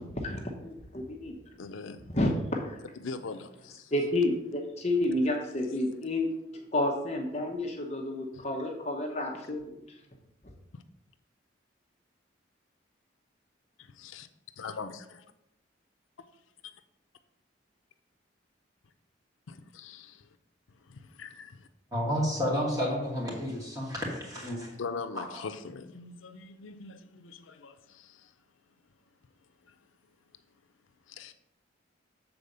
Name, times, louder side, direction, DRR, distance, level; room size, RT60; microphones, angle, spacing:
voice 1, 0.2-0.7 1.1-1.4 2.1-2.8 3.9-6.3 6.7-10.0, left 1 dB, 35° left, 1 dB, 0.9 m, -30 dB
voice 2, 1.6-2.0 3.0-3.9 8.3-8.4 10.7-10.8 13.8-14.3 14.6-15.2 16.6-16.7 19.5-20.3 20.8-21.7 24.8-28.3 29.7-29.8 31.1-31.3, left 4 dB, 90° left, 10 dB, 0.5 m, -42 dB
voice 3, 21.9-24.7 25.2-25.5, equal, 20° right, -3 dB, 2.3 m, -31 dB
7.0 x 4.1 x 6.6 m, 0.88 s
head